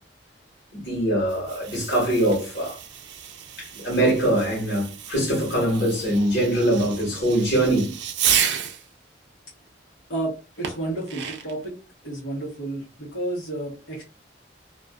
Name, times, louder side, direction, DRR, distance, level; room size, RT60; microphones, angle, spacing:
voice 1, 0.7-2.8 3.6-7.9, right 1 dB, 60° left, 1.2 m, -23 dB
Fireworks, 1.2-8.9 10.6-11.6, right 9 dB, 65° right, 0.4 m, -31 dB
voice 2, 10.1-11.8 12.0-14.0, right 2 dB, 80° left, 1.0 m, -31 dB
2.4 x 2.4 x 2.2 m
head